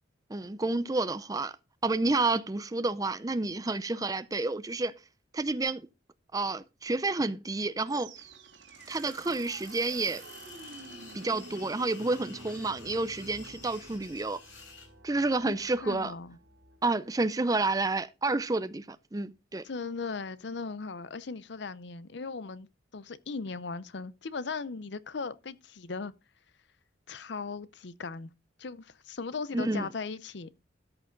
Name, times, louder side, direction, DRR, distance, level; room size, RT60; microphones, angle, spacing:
voice 1, 0.3-1.5 1.8-4.9 5.3-5.9 6.3-8.1 8.9-10.2 11.1-14.4 15.0-16.1 16.8-19.6 29.5-29.9, right 3 dB, 20° right, 0.5 m, -30 dB
sound 1, 7.9-17.0, right 3 dB, 85° right, 2.3 m, -50 dB
sound 2, 8.7-14.9, left 4 dB, 80° left, 3.8 m, -51 dB
voice 2, 15.8-16.4 19.6-22.7 22.9-26.1 27.1-28.3 28.6-30.6, left 4 dB, 65° left, 0.6 m, -38 dB
13.5 x 6.9 x 3.9 m
head